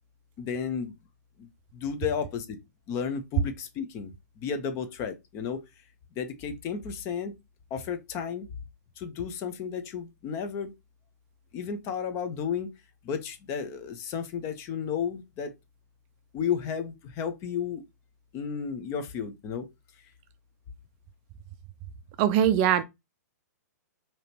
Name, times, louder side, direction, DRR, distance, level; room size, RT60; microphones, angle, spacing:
voice 1, 0.4-0.9 1.4-2.6 2.9-5.6 6.2-7.3 7.7-8.5 9.0-10.7 11.5-12.7 13.0-15.5 16.3-17.8 18.3-19.7, left 7 dB, 30° left, 0.7 m, -33 dB
voice 2, 22.2-22.8, right 10 dB, 35° right, 0.4 m, -21 dB
4.9 x 2.9 x 2.8 m
hypercardioid pair, 140°, 9 cm